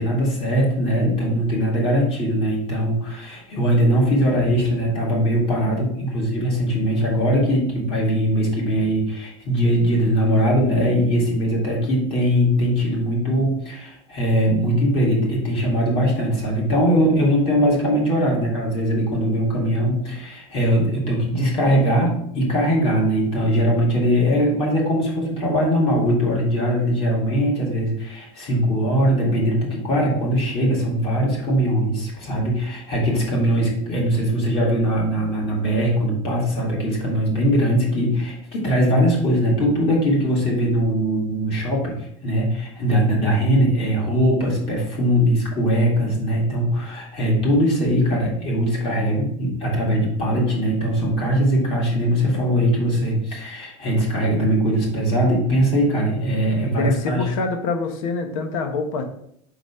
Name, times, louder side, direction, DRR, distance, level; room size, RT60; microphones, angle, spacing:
voice 1, 0.0-57.3, equal, 35° left, -3 dB, 2.2 m, -21 dB
voice 2, 56.8-59.0, left 3 dB, 75° left, 5 dB, 1.1 m, -25 dB
4.8 x 4.1 x 5.5 m, 0.69 s
supercardioid pair, 160°, 17 cm